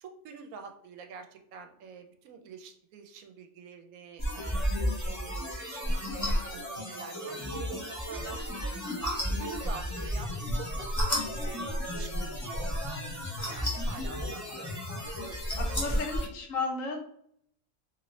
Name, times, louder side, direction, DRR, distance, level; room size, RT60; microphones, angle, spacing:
voice 1, 0.0-8.6 9.4-14.8 15.6-16.0, right 6 dB, 80° right, 5 dB, 1.0 m, -46 dB
sound 1, 4.2-16.3, equal, 15° left, 0.7 m, -32 dB
voice 2, 15.6-17.0, left 4 dB, 70° left, 2 dB, 1.0 m, -34 dB
2.9 x 2.6 x 3.0 m, 0.68 s
omnidirectional pair, 1.5 m